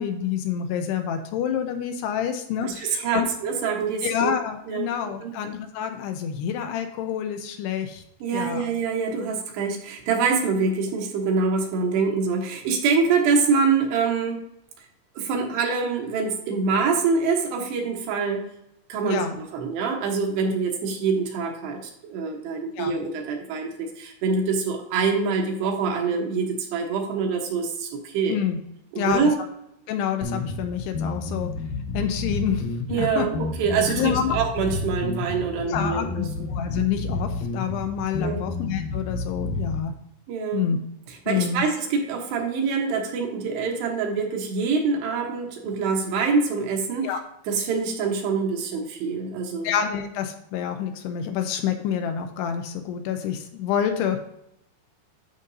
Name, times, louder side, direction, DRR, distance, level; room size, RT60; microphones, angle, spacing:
voice 1, 0.0-3.3 4.0-8.0 8.3-8.7 19.0-19.4 22.8-22.9 28.3-28.6 29.0-29.2 29.9-31.5 31.9-33.3 34.0-34.4 35.7-39.9 40.5-40.8 41.3-41.6 47.0-47.2 49.6-54.2, left 8 dB, 80° left, 6 dB, 2.5 m, -27 dB
voice 2, 2.6-4.3 4.7-4.9 5.2-5.3 8.2-14.5 15.2-18.5 18.9-28.4 28.9-29.4 32.9-36.3 38.2-38.5 40.3-40.7 41.1-47.1 47.5-49.7, right 5 dB, 75° right, 1 dB, 3.1 m, -25 dB
sound 1, 30.2-39.8, left 3 dB, 65° left, 2.6 m, -30 dB
12.0 x 5.1 x 2.7 m, 0.79 s
omnidirectional pair, 5.0 m